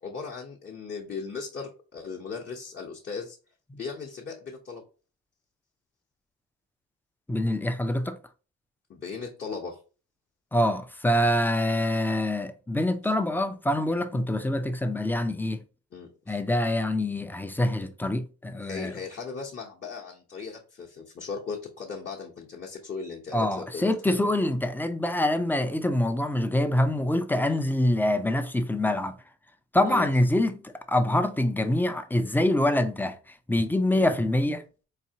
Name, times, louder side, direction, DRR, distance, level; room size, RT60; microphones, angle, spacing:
voice 1, 0.0-3.4 3.8-4.8 8.9-9.8 15.9-16.4 18.6-24.3 29.8-30.1 33.9-34.2, left 5 dB, 35° left, 0.8 m, -37 dB
voice 2, 7.3-8.2 10.5-15.6 16.3-18.9 23.3-29.2 29.7-34.6, left 1 dB, 5° left, 0.4 m, -25 dB
4.1 x 2.8 x 2.7 m
cardioid pair, 90°, 30 cm